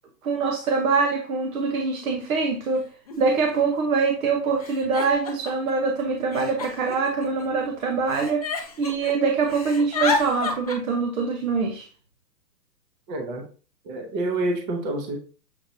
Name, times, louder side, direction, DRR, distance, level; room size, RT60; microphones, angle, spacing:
voice 1, 0.2-2.9 3.2-11.9, right 4 dB, 55° right, 0.9 m, -24 dB
Giggle, 2.0-2.1 3.1-3.2 3.4-4.0 4.6-5.7 6.3-7.6 8.1-9.1 9.4-10.8, left 5 dB, 25° left, 0.4 m, -30 dB
voice 2, 13.1-13.5 13.8-15.2, right 2 dB, 25° right, 0.9 m, -28 dB
7.0 x 2.9 x 2.6 m
hypercardioid pair, 135°, 50 cm